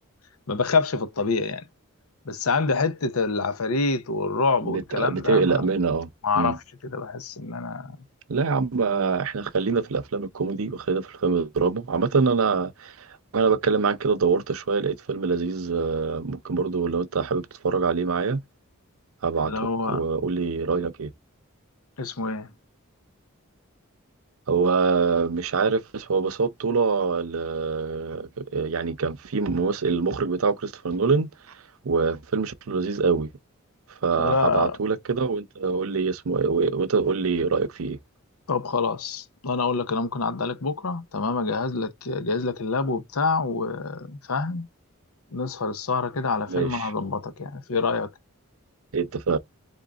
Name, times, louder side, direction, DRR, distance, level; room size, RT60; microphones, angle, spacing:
voice 1, 0.5-1.6 2.2-5.6 6.2-8.0 19.4-20.0 22.0-22.5 34.2-34.8 38.5-44.7 45.3-48.1, left 4 dB, 90° left, 0.8 m, -26 dB
voice 2, 4.6-6.1 6.4-6.6 8.3-18.4 19.2-19.5 19.8-21.1 24.5-31.3 31.8-33.3 34.0-38.0 46.5-46.9 48.9-49.4, right 4 dB, 75° right, 0.6 m, -24 dB
3.9 x 3.6 x 3.5 m
head